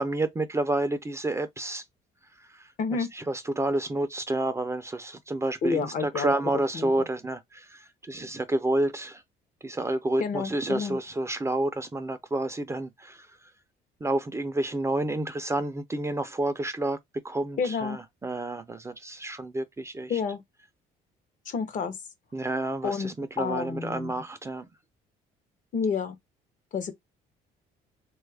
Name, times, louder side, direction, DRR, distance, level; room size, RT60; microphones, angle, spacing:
voice 1, 0.0-1.8 2.5-2.7 3.0-9.2 9.6-13.3 14.0-17.0 17.2-20.2 22.3-24.7, right 2 dB, 15° right, 0.4 m, -29 dB
voice 2, 2.8-3.1 5.6-6.3 6.7-6.9 10.2-11.0 17.6-18.0 20.1-20.4 21.5-22.0 22.8-23.1 23.4-24.1 25.7-26.2 26.7-26.9, left 5 dB, 50° left, 0.7 m, -29 dB
3.0 x 2.3 x 3.3 m
cardioid pair, 110°, 17 cm